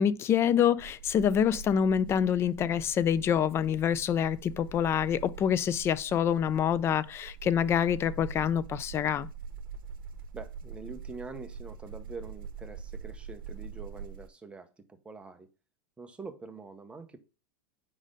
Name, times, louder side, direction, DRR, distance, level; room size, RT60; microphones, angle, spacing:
voice 1, 0.0-9.3, left 8 dB, 25° left, 0.3 m, -26 dB
sound 1, 0.8-14.3, right 6 dB, 85° right, 0.7 m, -44 dB
voice 2, 10.3-15.5 16.0-17.2, right 4 dB, 10° right, 0.8 m, -45 dB
5.0 x 4.1 x 5.0 m
supercardioid pair, 135°, 11 cm